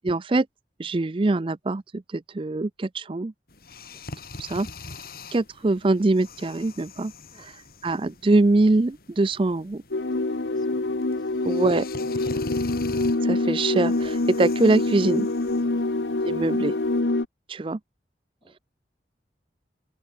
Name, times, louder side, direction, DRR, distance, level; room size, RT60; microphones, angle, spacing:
voice 1, 0.0-0.5 0.8-3.3 4.4-4.7 5.3-7.1 7.8-9.8 11.5-11.9 13.2-15.3 16.2-16.7 17.5-17.8, right 2 dB, 30° right, 0.4 m, -23 dB
sound 1, 3.5-17.0, left 2 dB, 55° left, 5.7 m, -43 dB
sound 2, 9.9-17.2, left 2 dB, 90° left, 1.1 m, -25 dB
voice 2, 10.0-10.8 11.1-11.5 12.0-12.6 15.7-16.0 18.4-18.6, left 1 dB, 25° left, 7.2 m, -56 dB
head